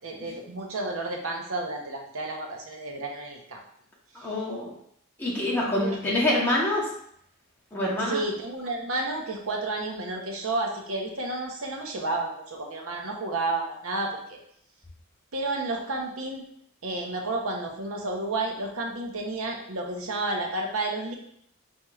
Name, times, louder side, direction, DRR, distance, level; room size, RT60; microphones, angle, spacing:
voice 1, 0.0-3.6 5.7-6.0 8.0-14.4 15.3-16.4 16.8-21.2, right 2 dB, 80° right, 1 dB, 0.9 m, -31 dB
voice 2, 4.1-4.7 5.2-6.9 7.7-8.2, left 1 dB, 10° left, -6 dB, 1.0 m, -26 dB
4.6 x 4.4 x 2.4 m, 0.68 s
head